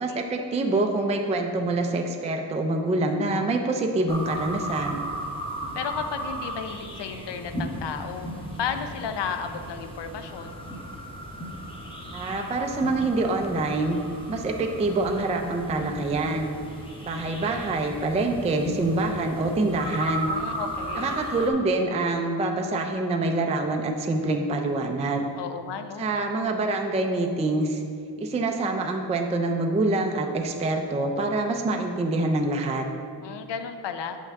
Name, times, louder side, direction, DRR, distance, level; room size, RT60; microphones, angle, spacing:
voice 1, 0.0-5.0 12.1-14.0 14.3-16.6 17.0-20.3 20.9-25.3 26.0-27.8 28.2-32.8, right 2 dB, 15° right, 3 dB, 0.3 m, -26 dB
sound 1, 4.1-21.5, right 1 dB, 10° left, 0.8 m, -36 dB
voice 2, 5.7-8.3 8.6-10.6 20.3-21.2 25.3-26.1 33.2-34.2, left 6 dB, 75° left, 8 dB, 0.6 m, -33 dB
8.2 x 5.6 x 3.5 m, 2.3 s
wide cardioid pair, 170°, 43 cm